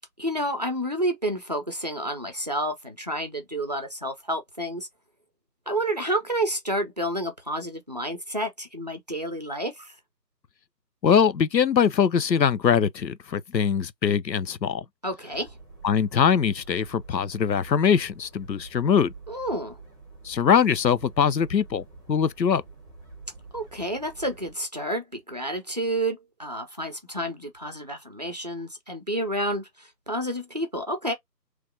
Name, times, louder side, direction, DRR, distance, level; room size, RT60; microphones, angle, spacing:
voice 1, 0.2-4.9 5.7-9.9 15.0-15.5 19.3-19.8 23.5-31.1, right 1 dB, 25° right, 0.6 m, -30 dB
voice 2, 11.0-14.8 15.8-19.1 20.2-22.6, left 7 dB, 90° left, 0.6 m, -22 dB
sound 1, 15.3-24.5, right 4 dB, 5° right, 1.2 m, -47 dB
3.3 x 3.1 x 2.5 m
figure-of-eight pair, 150°, 50 cm